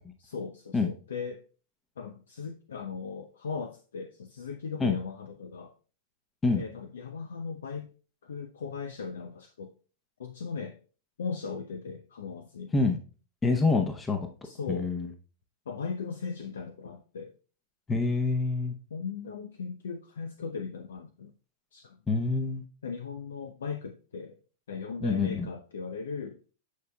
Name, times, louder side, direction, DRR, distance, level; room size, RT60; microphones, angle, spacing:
voice 1, 0.2-1.4 2.0-5.7 6.5-7.9 8.2-9.7 10.2-10.8 11.2-12.7 14.4-14.9 15.7-17.3 18.9-21.3 21.7-22.0 22.8-24.4 24.7-26.4, left 5 dB, 75° left, 7 dB, 0.6 m, -38 dB
voice 2, 13.4-14.2 14.7-15.1 17.9-18.7 22.1-22.6 25.0-25.5, left 3 dB, 15° left, 5 dB, 0.9 m, -26 dB
9.3 x 4.8 x 2.3 m, 0.37 s
hypercardioid pair, 100°, 0 cm